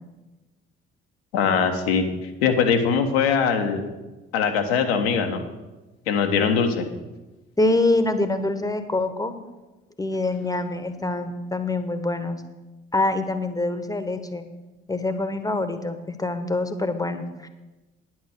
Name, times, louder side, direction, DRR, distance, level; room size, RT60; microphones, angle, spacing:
voice 1, 1.3-2.0 2.4-3.8 4.3-5.4 6.1-6.9, left 6 dB, 70° left, 5 dB, 1.3 m, -21 dB
voice 2, 7.6-9.3 10.0-12.4 12.9-14.4 14.9-17.5, left 2 dB, 10° left, 9 dB, 1.3 m, -25 dB
10.0 x 9.3 x 6.6 m, 1.1 s
figure-of-eight pair, 45°, 32 cm